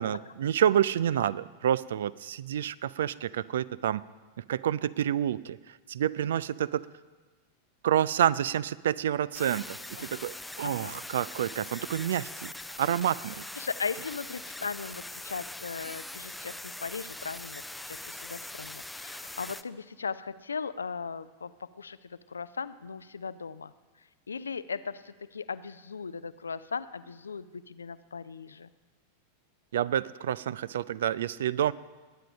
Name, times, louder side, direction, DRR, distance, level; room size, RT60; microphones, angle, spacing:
voice 1, 0.0-4.0 4.5-5.6 5.9-6.9 7.8-12.5 12.8-13.4 29.7-31.7, right 10 dB, 60° right, 21 dB, 0.3 m, -28 dB
sound 1, 9.3-19.6, left 2 dB, 5° left, 0.5 m, -42 dB
voice 2, 10.6-11.0 13.6-21.5 21.8-23.7 24.3-28.7, left 5 dB, 75° left, 15 dB, 0.4 m, -38 dB
20.5 x 8.9 x 5.1 m, 1.3 s
figure-of-eight pair, 90°, 0 cm